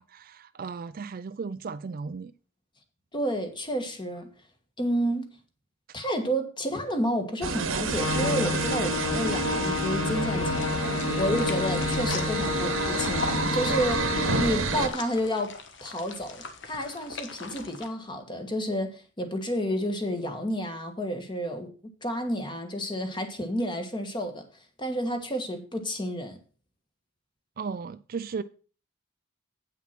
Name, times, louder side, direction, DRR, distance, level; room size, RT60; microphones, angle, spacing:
voice 1, 0.0-2.3 27.6-28.4, right 5 dB, 45° right, 0.4 m, -35 dB
voice 2, 3.1-4.3 4.8-5.3 5.9-10.8 11.2-21.7 22.0-24.5 24.8-26.4, equal, 20° left, 1.5 m, -30 dB
sound 1, 7.4-14.9, right 3 dB, 75° right, 1.2 m, -29 dB
sound 2, 7.9-14.5, left 4 dB, 85° left, 1.4 m, -30 dB
sound 3, 10.4-17.9, left 4 dB, 60° left, 1.3 m, -41 dB
8.5 x 5.9 x 5.8 m
head